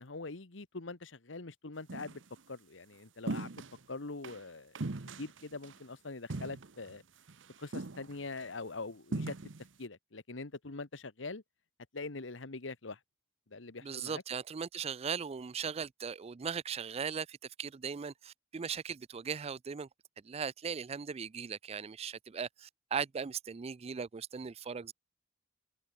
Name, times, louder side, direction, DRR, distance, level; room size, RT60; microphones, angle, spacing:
voice 1, 0.0-2.2 2.5-3.5 3.9-4.8 5.2-7.0 7.6-9.4 9.8-11.4 11.9-13.0 13.5-14.2, left 3 dB, 80° left, 1.4 m, -43 dB
sound 1, 1.9-2.2 3.3-3.8 4.2-4.4 4.7-5.8 6.3-7.0 7.3-7.4 7.7-8.4 9.1-9.7, right 2 dB, 80° right, 1.0 m, -39 dB
voice 2, 13.8-19.9 20.2-24.9, right 6 dB, 35° right, 0.4 m, -38 dB
head